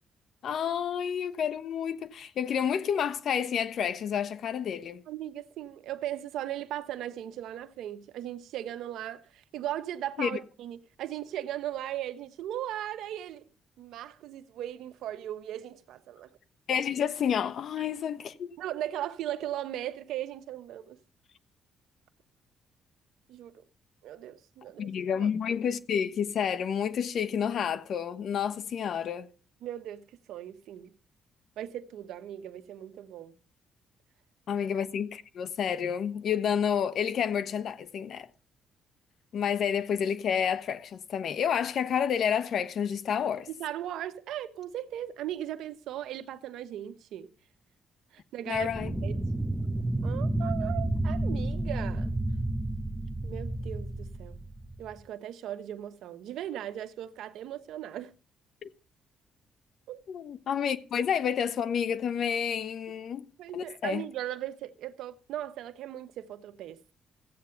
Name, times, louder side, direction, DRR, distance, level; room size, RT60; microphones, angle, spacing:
voice 1, 0.4-5.0 10.2-10.4 16.7-18.5 24.8-29.3 34.5-38.3 39.3-43.5 48.5-49.1 58.6-58.7 60.1-63.3 63.5-64.0, left 8 dB, 65° left, 1.1 m, -30 dB
voice 2, 5.1-13.5 13.8-16.3 18.6-21.0 23.3-23.6 24.0-24.9 25.2-25.3 29.6-30.9 31.6-33.3 34.5-34.7 43.5-47.3 48.1-48.7 49.0-49.2 50.0-52.1 53.2-54.4 54.8-58.1 59.9-60.0 63.4-66.8, right 12 dB, 85° right, 1.0 m, -38 dB
sound 1, 48.5-55.0, right 1 dB, 10° right, 0.9 m, -31 dB
15.0 x 8.7 x 5.8 m
cardioid pair, 90°, 0 cm